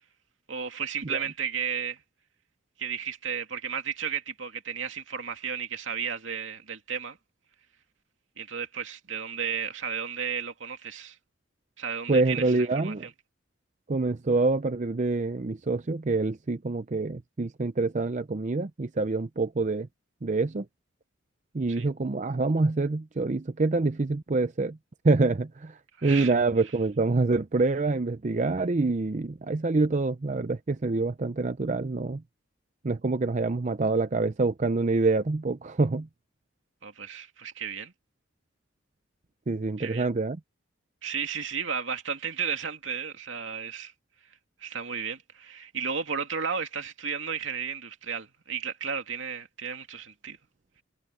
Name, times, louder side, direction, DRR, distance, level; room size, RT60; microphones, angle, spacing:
voice 1, 0.5-2.0 2.8-7.2 8.4-11.2 11.8-13.1 21.7-21.9 26.0-26.3 36.8-37.9 39.8-40.1 41.0-43.9 44.6-50.4, right 6 dB, 75° right, 2.6 m, -33 dB
voice 2, 12.1-13.1 13.9-19.9 20.2-20.7 21.5-24.8 25.0-32.2 32.8-36.1 39.5-40.4, right 3 dB, 40° right, 0.5 m, -26 dB
head